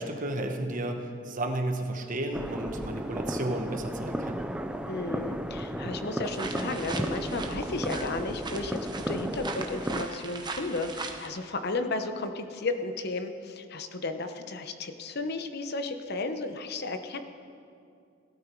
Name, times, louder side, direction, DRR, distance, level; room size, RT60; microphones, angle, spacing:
voice 1, 0.0-4.5, right 1 dB, 45° right, 5 dB, 1.2 m, -33 dB
sound 1, 2.3-10.1, right 1 dB, 5° right, 0.4 m, -34 dB
voice 2, 4.9-8.8 9.1-17.2, left 3 dB, 55° left, 8 dB, 0.9 m, -33 dB
sound 2, 6.2-11.3, right 3 dB, 25° right, 1.0 m, -39 dB
sound 3, 7.9-9.7, left 1 dB, 40° left, 1.7 m, -50 dB
17.5 x 12.5 x 4.6 m, 2.4 s
head